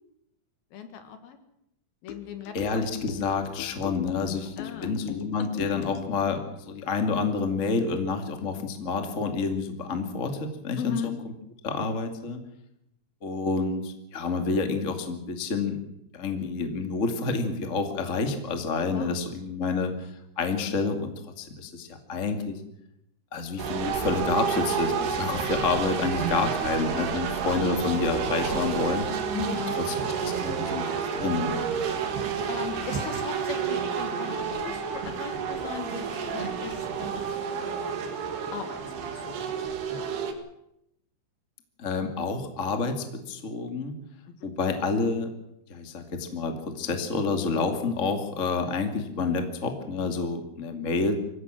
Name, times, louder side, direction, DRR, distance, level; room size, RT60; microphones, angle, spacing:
voice 1, 0.7-1.4 2.0-2.8 4.6-4.9 5.4-5.5 10.8-11.1 18.9-19.2 29.3-29.8 32.5-37.2 37.6-37.9 38.5-38.8 39.2-39.5 44.4-44.5, left 8 dB, 65° left, 8 dB, 3.0 m, -38 dB
sound 1, 2.1-6.4, left 12 dB, 80° left, 3.4 m, -40 dB
voice 2, 2.5-11.3 11.6-12.4 13.2-15.8 16.1-20.1 20.4-21.1 21.4-22.6 23.3-29.1 29.9-31.6 41.8-44.0 44.4-45.3 45.7-51.2, left 4 dB, 35° left, 5 dB, 1.2 m, -29 dB
sound 2, 23.6-40.3, right 6 dB, 65° right, 3.8 m, -30 dB
24.5 x 16.0 x 7.6 m, 0.81 s
omnidirectional pair, 5.3 m